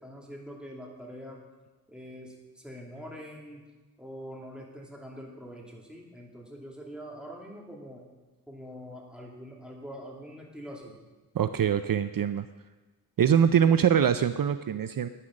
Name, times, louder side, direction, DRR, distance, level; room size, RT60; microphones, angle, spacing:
voice 1, 0.0-1.4 1.9-3.7 4.0-8.1 8.5-10.9 13.6-13.7, equal, ahead, -2 dB, 2.6 m, -44 dB
voice 2, 11.3-12.5 13.2-15.1, right 8 dB, 60° right, 11 dB, 0.5 m, -23 dB
9.9 x 9.9 x 6.4 m, 1.2 s
wide cardioid pair, 85°, 38 cm